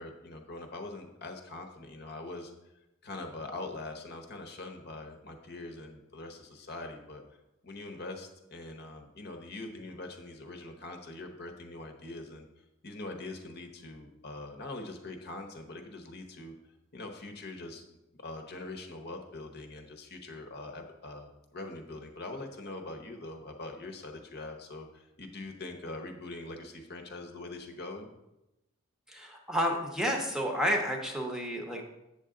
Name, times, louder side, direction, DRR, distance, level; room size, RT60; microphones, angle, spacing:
voice 1, 0.0-2.5 3.0-7.2 7.6-12.5 12.8-16.5 16.9-17.8 18.2-28.1, left 2 dB, 50° left, 4 dB, 0.9 m, -43 dB
voice 2, 29.1-31.8, equal, 5° right, 1 dB, 0.9 m, -30 dB
8.0 x 6.9 x 3.7 m, 0.92 s
head